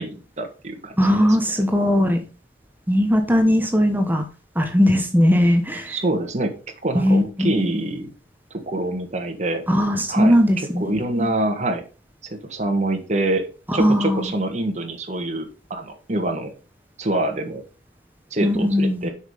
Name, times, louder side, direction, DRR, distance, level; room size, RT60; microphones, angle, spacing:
voice 1, 0.0-1.5 5.9-6.5 6.8-8.1 8.5-9.6 10.1-10.3 10.8-11.8 12.2-13.5 13.7-16.5 17.0-17.6 18.3-19.1, right 2 dB, 40° right, 4 dB, 1.5 m, -25 dB
voice 2, 1.0-2.2 2.9-4.2 4.6-6.0 6.9-7.8 9.7-10.9 11.2-11.3 13.7-14.3 18.4-19.1, equal, 10° right, 5 dB, 1.0 m, -19 dB
7.2 x 5.5 x 5.0 m, 0.33 s
head